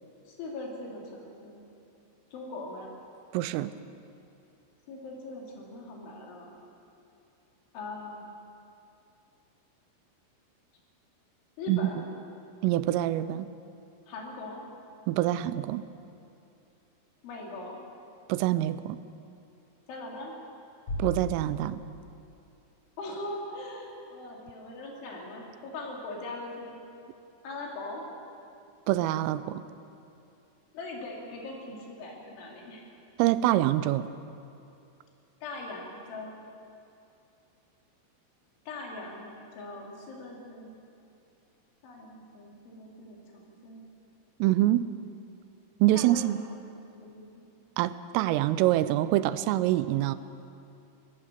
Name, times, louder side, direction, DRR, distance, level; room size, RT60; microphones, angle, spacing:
voice 1, 0.3-1.6 2.3-2.9 4.9-6.6 7.7-8.2 11.6-12.0 14.1-14.6 17.2-17.8 19.9-20.4 23.0-26.7 27.4-28.0 30.7-32.9 35.4-36.3 38.7-40.8 41.8-43.8 45.9-47.5, left 2 dB, 70° left, -1 dB, 5.3 m, -41 dB
voice 2, 3.3-3.7 11.7-11.8 12.6-13.5 15.1-15.9 18.3-19.0 21.0-21.8 28.9-29.6 33.2-34.1 44.4-44.9 45.8-46.4 47.8-50.2, right 14 dB, 90° right, 14 dB, 3.2 m, -25 dB
Bass drum, 20.9-22.6, left 1 dB, 35° left, 4.6 m, -37 dB
23.0 x 18.0 x 6.8 m, 2.7 s
omnidirectional pair, 5.8 m